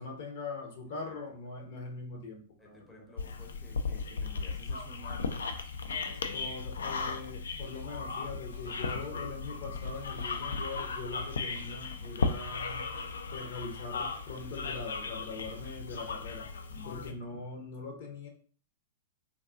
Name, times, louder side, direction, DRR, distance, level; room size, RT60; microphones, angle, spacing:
voice 1, 0.0-3.1 6.3-12.9 13.3-16.5 16.9-18.3, left 3 dB, 50° left, 2 dB, 0.7 m, -42 dB
sound 1, 2.4-17.1, equal, 80° left, 1.1 m, -58 dB
voice 2, 2.6-6.5 16.7-17.1, left 3 dB, 10° left, 0 dB, 0.6 m, -53 dB
sound 2, 3.2-17.1, left 4 dB, 65° left, 0.3 m, -36 dB
3.5 x 2.3 x 2.4 m, 0.42 s
figure-of-eight pair, 100°, 0 cm